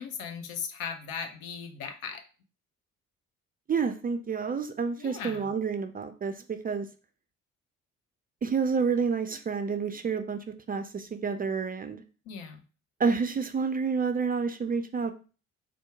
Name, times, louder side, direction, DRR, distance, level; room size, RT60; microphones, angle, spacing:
voice 1, 0.0-2.2 5.0-5.5 12.3-12.6, left 6 dB, 60° left, 6 dB, 0.8 m, -38 dB
voice 2, 3.7-6.9 8.4-10.4 10.7-12.0 13.0-15.1, right 5 dB, 25° right, 8 dB, 0.4 m, -29 dB
4.3 x 2.3 x 4.6 m, 0.36 s
figure-of-eight pair, 40°, 40 cm